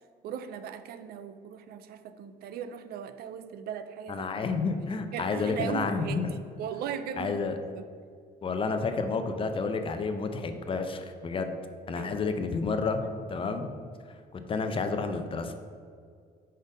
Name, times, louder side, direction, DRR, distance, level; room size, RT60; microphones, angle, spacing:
voice 1, 0.2-4.2 5.1-6.2 6.6-7.3 7.7-7.9 11.9-12.1, right 8 dB, 65° right, 11 dB, 0.4 m, -38 dB
voice 2, 4.1-6.3 7.2-7.6 8.4-11.6 11.9-13.0 13.3-13.7 14.3-15.6, left 4 dB, 30° left, 7 dB, 0.5 m, -30 dB
5.2 x 4.2 x 5.2 m, 2.1 s
cardioid pair, 110°, 17 cm